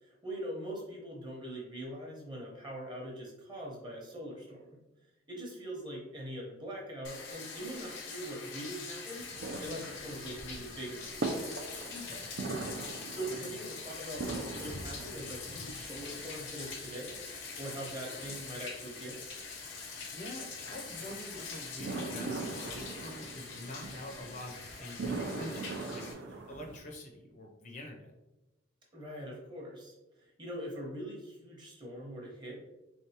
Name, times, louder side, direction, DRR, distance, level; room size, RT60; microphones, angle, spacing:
voice 1, 0.0-4.8 5.3-9.3 9.6-11.4 13.1-17.2 17.6-19.2 28.9-32.6, right 1 dB, 25° right, -2 dB, 0.9 m, -42 dB
Bathtub (filling or washing), 7.0-26.1, left 4 dB, 75° left, 0.7 m, -44 dB
sound 1, 9.2-26.8, right 3 dB, 60° right, 0.4 m, -42 dB
voice 2, 11.9-12.3 20.1-28.1, left 1 dB, 40° left, 1 dB, 0.5 m, -46 dB
3.5 x 3.3 x 2.8 m, 1.0 s
head